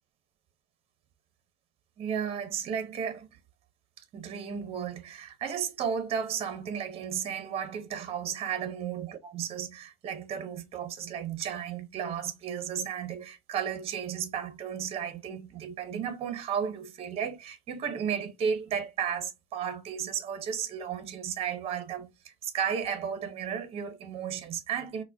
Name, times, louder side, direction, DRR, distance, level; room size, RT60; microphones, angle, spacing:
voice 1, 2.0-3.3 4.1-25.0, right 8 dB, 35° right, 0.7 m, -34 dB
4.5 x 2.1 x 2.6 m
cardioid pair, 135°, 17 cm